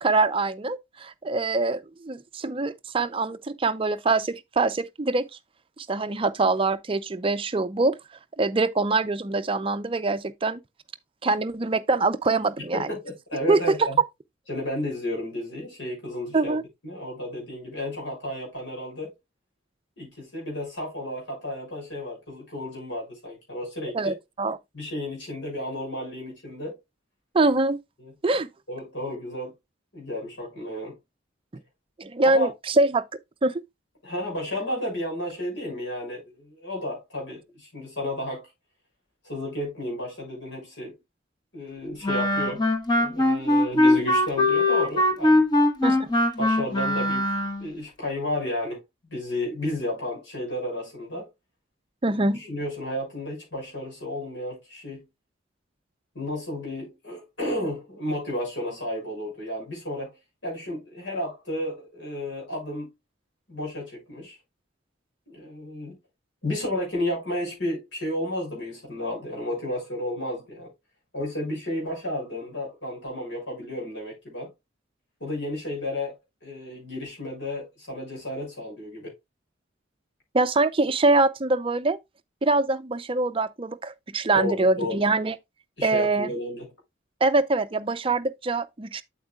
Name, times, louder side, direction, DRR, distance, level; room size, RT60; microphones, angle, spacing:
voice 1, 0.0-5.3 5.8-8.0 8.4-10.6 11.2-12.9 13.5-13.9 16.3-16.6 23.9-24.6 27.3-27.8 28.2-28.5 32.0-33.0 33.4-33.6 45.8-46.1 52.0-52.4 80.3-82.0 82.4-85.3 85.8-86.3 87.2-89.0, right 3 dB, 30° right, 0.5 m, -24 dB
voice 2, 12.7-14.0 14.5-16.6 16.8-19.1 20.0-24.2 24.7-26.8 28.0-28.1 28.7-29.5 29.9-31.0 32.2-32.5 34.0-38.5 39.2-40.9 41.5-42.7 43.0-45.4 46.4-47.3 47.6-48.8 49.1-51.3 52.0-55.0 56.1-60.1 60.4-62.9 63.5-64.4 65.3-66.0 66.4-70.7 71.1-74.5 75.2-76.1 76.4-79.1 84.3-85.0 85.8-86.7, left 1 dB, 70° left, 6.3 m, -32 dB
Wind instrument woodwind instrument, 42.0-47.7, left 1 dB, 20° left, 1.3 m, -21 dB
8.4 x 8.1 x 2.4 m
head